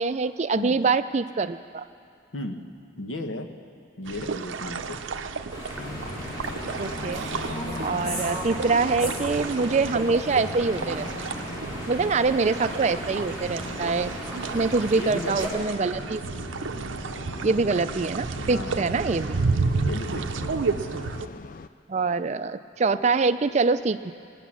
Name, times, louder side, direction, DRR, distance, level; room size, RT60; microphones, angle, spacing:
voice 1, 0.0-1.8 6.8-7.2 7.8-11.1 11.9-14.1 14.5-16.2 17.4-19.4 21.9-24.1, right 4 dB, 35° right, 11 dB, 0.4 m, -24 dB
voice 2, 2.3-2.6 3.0-3.5 4.0-5.0 7.9-8.2 13.7-14.0 14.9-15.6 18.4-18.9 19.8-20.5, left 1 dB, 90° left, 5 dB, 1.1 m, -35 dB
sound 1, 4.1-21.3, right 4 dB, 85° right, 0.6 m, -32 dB
sound 2, 5.5-15.5, equal, 20° left, 3.6 m, -36 dB
sound 3, 5.8-21.7, left 3 dB, 45° left, 0.4 m, -40 dB
19.0 x 9.2 x 7.3 m, 2.5 s
head